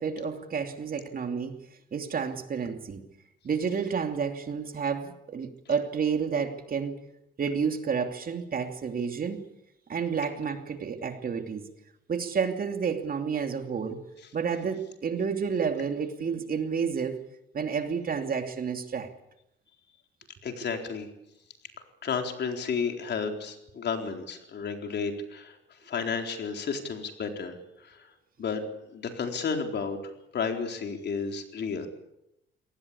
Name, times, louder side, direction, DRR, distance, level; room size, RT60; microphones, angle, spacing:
voice 1, 0.0-1.6 1.9-3.0 3.4-7.0 7.4-9.4 9.9-11.6 12.1-14.0 14.3-17.2 17.5-19.1, right 6 dB, 45° right, 6 dB, 2.8 m, -30 dB
voice 2, 20.4-21.1 22.0-25.5 25.9-27.6 27.9-28.0 28.4-28.6 28.9-30.0 30.3-31.9, left 5 dB, 60° left, 4 dB, 4.1 m, -32 dB
23.5 x 19.0 x 8.5 m, 0.85 s
cardioid pair, 90°, 20 cm